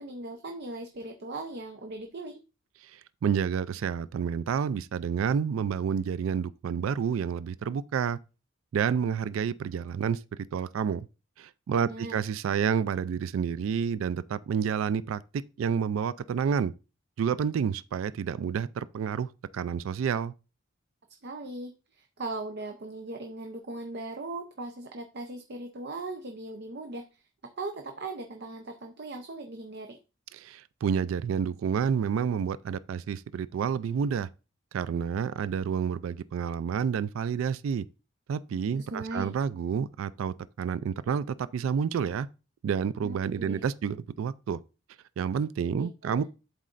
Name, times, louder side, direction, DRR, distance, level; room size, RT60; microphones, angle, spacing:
voice 1, 0.0-2.4 11.9-12.2 21.2-27.3 27.6-30.0 38.9-39.3 43.0-43.6 45.7-46.2, right 2 dB, 55° right, 0.7 m, -39 dB
voice 2, 2.8-8.2 8.7-10.2 10.5-11.1 11.4-16.7 17.2-20.3 30.3-34.3 34.7-37.8 38.3-42.3 42.6-44.6 45.2-46.2, right 7 dB, 85° right, 0.3 m, -29 dB
11.5 x 4.2 x 2.5 m
head